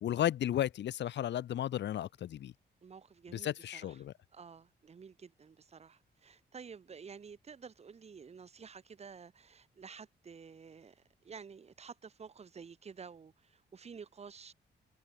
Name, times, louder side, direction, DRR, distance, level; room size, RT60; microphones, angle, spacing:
voice 1, 0.0-2.5 3.3-4.1, left 11 dB, 70° left, 1.0 m, -34 dB
voice 2, 2.8-4.0 4.3-14.5, right 6 dB, 35° right, 3.5 m, -51 dB
wide cardioid pair, 180°, 19 cm